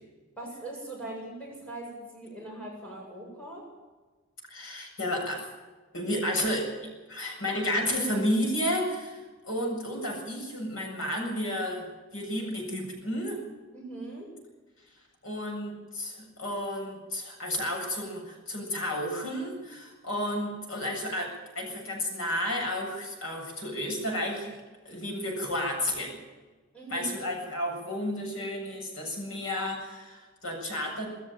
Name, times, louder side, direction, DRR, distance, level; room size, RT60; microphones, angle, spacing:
voice 1, 0.4-3.7 13.7-14.4 26.7-27.1, right 2 dB, 5° left, -3 dB, 7.8 m, -41 dB
voice 2, 4.5-5.5 5.9-6.7 7.1-11.9 12.1-13.4 15.2-24.6 24.8-26.2 26.9-31.1, left 1 dB, 80° left, 1 dB, 7.7 m, -32 dB
21.0 x 15.0 x 9.2 m, 1.3 s
head